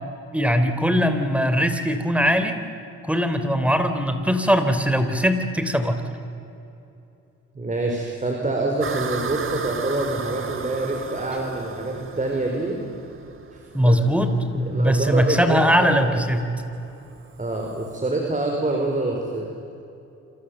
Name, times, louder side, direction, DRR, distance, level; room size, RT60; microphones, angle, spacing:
voice 1, 0.3-2.6 3.0-6.0 13.7-16.5, equal, 5° right, 9 dB, 3.2 m, -20 dB
voice 2, 7.5-12.8 13.5-14.0 14.7-16.1 17.4-19.5, right 2 dB, 25° right, 1 dB, 4.8 m, -26 dB
sound 1, 8.8-18.0, right 5 dB, 45° right, 2.8 m, -35 dB
28.5 x 26.5 x 7.9 m, 2.8 s
cardioid pair, 90°, 30 cm